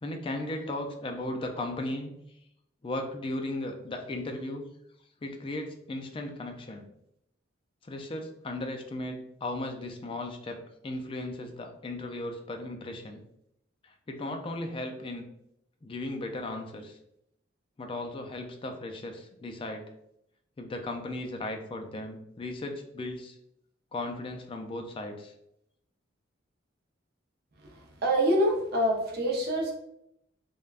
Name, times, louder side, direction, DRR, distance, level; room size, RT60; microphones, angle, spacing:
voice 1, 0.0-2.2 2.8-4.7 5.2-6.8 7.8-13.2 13.8-15.2 15.8-17.0 17.8-19.8 20.6-23.4 23.9-25.3, left 2 dB, 25° left, 4 dB, 0.3 m, -36 dB
voice 2, 28.0-29.7, equal, 55° right, 0 dB, 0.6 m, -25 dB
3.3 x 2.2 x 2.4 m, 0.77 s
head